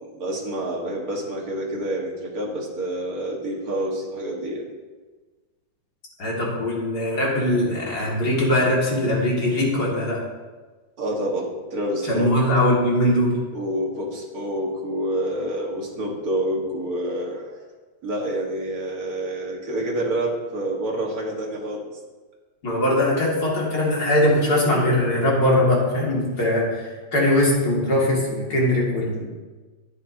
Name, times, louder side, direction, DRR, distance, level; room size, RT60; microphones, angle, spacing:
voice 1, 0.0-4.7 11.0-12.3 13.5-17.5 18.0-21.8, right 1 dB, 50° right, -1 dB, 2.1 m, -28 dB
voice 2, 6.2-10.2 12.1-13.3 22.6-29.2, left 1 dB, 50° left, -4 dB, 2.9 m, -21 dB
11.5 x 9.7 x 2.8 m, 1.3 s
omnidirectional pair, 2.2 m